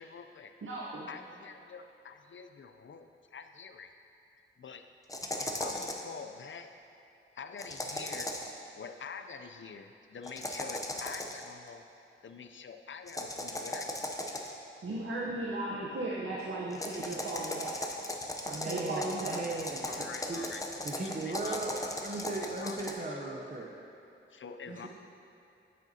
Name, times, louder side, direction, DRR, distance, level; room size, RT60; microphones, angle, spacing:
voice 1, 0.0-0.5 1.1-3.9 4.3-4.8 5.4-6.7 7.4-8.4 8.7-11.8 12.2-14.3 18.6-19.0 19.9-20.6 21.0-22.8 23.1-23.3 24.3-24.9, left 6 dB, 65° left, 7 dB, 0.4 m, -46 dB
voice 2, 0.6-1.1 14.8-18.0 18.4-19.4, right 2 dB, 75° right, -4 dB, 0.8 m, -36 dB
sound 1, 5.1-6.1 7.6-8.6 10.2-11.5 13.1-14.6 16.7-22.9, left 1 dB, 15° left, 0.6 m, -37 dB
voice 3, 18.5-20.4 20.8-23.7 24.7-24.9, right 2 dB, 40° right, -2 dB, 0.7 m, -38 dB
9.3 x 7.4 x 2.8 m, 2.9 s
wide cardioid pair, 100°, 21 cm